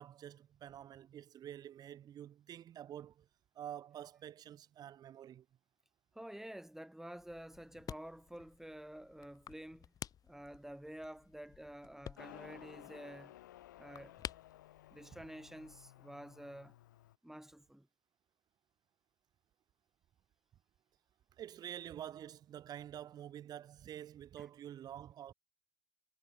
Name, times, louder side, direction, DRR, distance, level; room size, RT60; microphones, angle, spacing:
voice 1, 0.0-3.3 3.5-5.5 21.3-25.3, right 10 dB, 40° right, 0.7 m, -48 dB
voice 2, 6.1-9.9 10.2-13.4 13.8-14.2 14.9-16.8 17.2-17.9 24.4-24.5, right 1 dB, 5° right, 1.9 m, -50 dB
sound 1, 7.2-15.9, left 9 dB, 40° left, 0.7 m, -52 dB
Motorcycle, 12.2-17.2, left 14 dB, 85° left, 0.6 m, -56 dB
hypercardioid pair, 80°, 10 cm